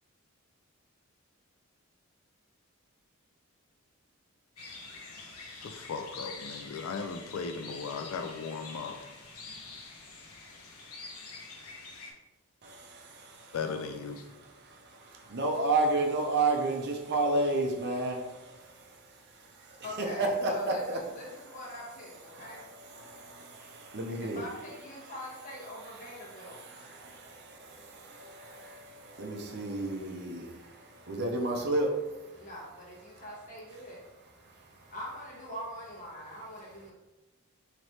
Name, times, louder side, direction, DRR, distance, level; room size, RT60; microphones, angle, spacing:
sound 1, 4.6-12.1, left 4 dB, 90° left, 0.8 m, -46 dB
voice 1, 5.6-9.0 13.5-14.2, left 5 dB, 65° left, 7 dB, 0.3 m, -37 dB
voice 2, 12.6-13.6 14.2-19.9 20.2-21.0 22.3-24.4 25.0-25.1 26.0-32.5 34.4-34.9, right 2 dB, 50° right, 1 dB, 0.6 m, -33 dB
voice 3, 19.8-22.6 24.2-26.6 32.4-34.0 34.9-36.9, equal, 35° left, -5 dB, 1.2 m, -43 dB
3.2 x 2.9 x 4.1 m, 1.1 s
head